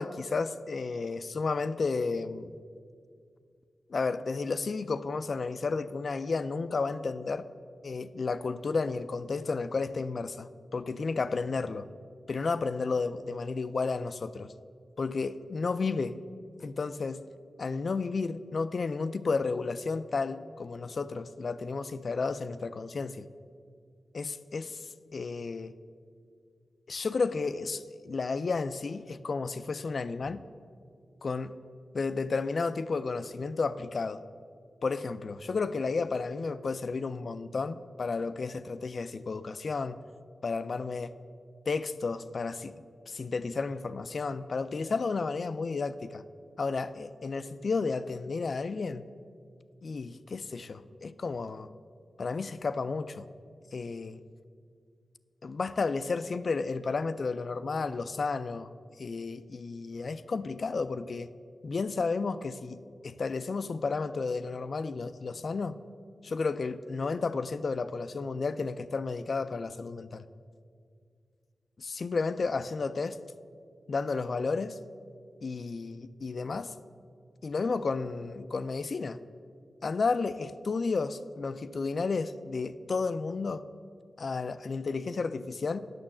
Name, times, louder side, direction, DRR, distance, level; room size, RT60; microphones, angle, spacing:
voice 1, 0.0-2.6 3.9-7.5 7.8-11.9 12.3-14.5 15.0-16.2 16.6-17.2 17.6-23.3 24.1-24.9 25.1-25.7 26.9-30.4 31.2-31.5 31.9-34.2 34.8-40.0 40.4-41.1 41.7-42.7 43.1-46.2 46.6-49.1 49.8-51.7 52.2-53.3 53.7-54.2 55.4-58.7 59.0-61.3 61.6-65.7 66.2-70.2 71.8-73.2 73.9-74.8 75.4-76.7 77.4-79.2 79.8-83.6 84.2-85.8, left 4 dB, 60° left, 13 dB, 0.4 m, -32 dB
8.9 x 6.4 x 7.2 m, 2.2 s
wide cardioid pair, 100°, 0 cm